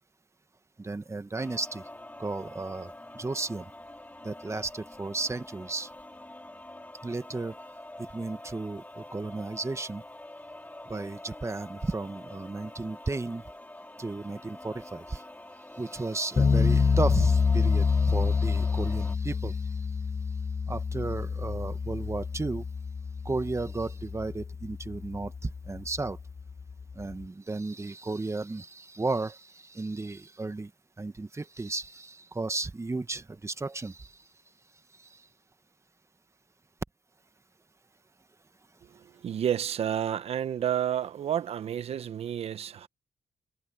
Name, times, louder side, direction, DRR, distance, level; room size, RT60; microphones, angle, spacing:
voice 1, 0.8-1.9 2.2-3.7 4.2-5.9 7.0-7.6 8.0-10.0 10.8-13.4 14.0-15.2 15.8-19.8 20.7-22.6 23.2-26.2 26.9-30.7 31.0-34.1 35.1-35.2, right 3 dB, 25° right, 1.7 m, -34 dB
sound 1, 1.4-19.2, left 1 dB, 15° left, 5.3 m, -46 dB
sound 2, 16.4-27.3, left 5 dB, 35° left, 0.5 m, -28 dB
voice 2, 39.0-42.9, right 9 dB, 70° right, 1.1 m, -30 dB
supercardioid pair, 50°, 11 cm